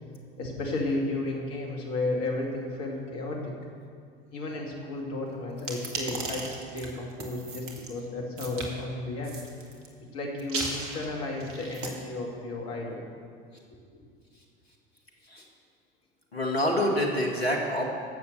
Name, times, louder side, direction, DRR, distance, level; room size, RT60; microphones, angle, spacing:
voice 1, 0.4-3.5 4.3-9.4 10.1-13.0, left 2 dB, 50° left, 0 dB, 2.5 m, -33 dB
sound 1, 5.6-7.9 8.4-8.7 9.2-9.9 10.4-11.9, right 3 dB, 45° right, 2.1 m, -36 dB
voice 2, 16.3-17.9, left 1 dB, 85° left, 0 dB, 1.8 m, -26 dB
12.0 x 7.3 x 6.9 m, 2.2 s
figure-of-eight pair, 70°, 30 cm